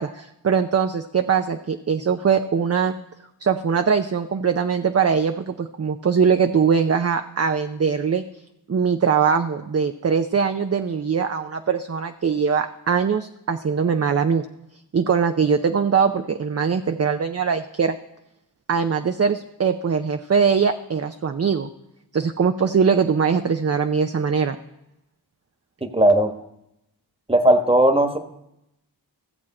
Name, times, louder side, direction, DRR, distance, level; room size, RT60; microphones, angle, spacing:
voice 1, 0.0-2.9 3.4-8.2 8.7-14.4 14.9-18.0 18.7-21.7 22.1-24.6, right 6 dB, 40° right, 7 dB, 0.6 m, -21 dB
voice 2, 25.8-26.3 27.3-28.2, right 1 dB, 15° right, 7 dB, 1.4 m, -17 dB
14.5 x 7.3 x 4.3 m, 0.84 s
cardioid pair, 40°, 41 cm